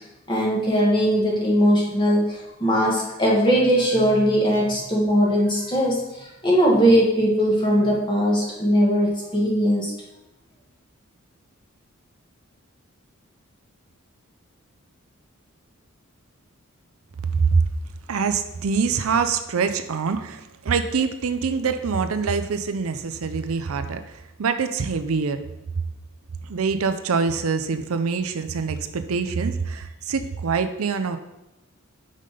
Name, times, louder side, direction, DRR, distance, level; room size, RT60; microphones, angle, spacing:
voice 1, 0.3-9.9, equal, 20° left, -4 dB, 1.8 m, -20 dB
voice 2, 17.3-17.7 18.1-25.4 26.4-31.2, right 5 dB, 85° right, 9 dB, 0.5 m, -24 dB
5.6 x 5.0 x 5.3 m, 0.93 s
head